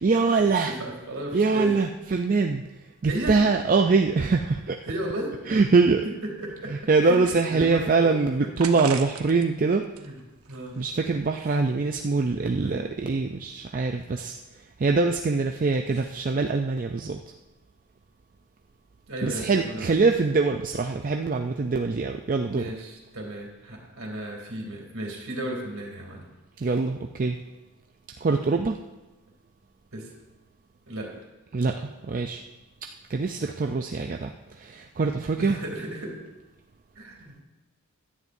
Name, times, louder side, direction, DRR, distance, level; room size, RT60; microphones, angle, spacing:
voice 1, 0.0-0.7 1.3-2.6 3.0-4.8 5.5-6.0 6.7-9.9 10.8-14.4 14.8-17.2 19.2-22.7 26.6-27.4 28.2-28.8 31.5-32.4 33.1-35.6, right 4 dB, 35° right, 4 dB, 0.4 m, -23 dB
voice 2, 0.7-1.7 3.0-3.3 4.8-5.3 6.4-6.7 7.0-7.2 7.5-8.1 10.0-10.2 10.5-10.8 12.6-12.8 19.1-19.9 22.4-26.2 26.6-26.7 29.9-30.1 30.9-31.1 35.4-36.2 37.0-37.4, right 1 dB, 65° right, 0 dB, 2.9 m, -34 dB
sound 1, 7.1-7.9 8.6-9.5 9.8-11.0, right 7 dB, 85° right, 1.0 m, -40 dB
16.5 x 11.0 x 2.7 m, 1.1 s
head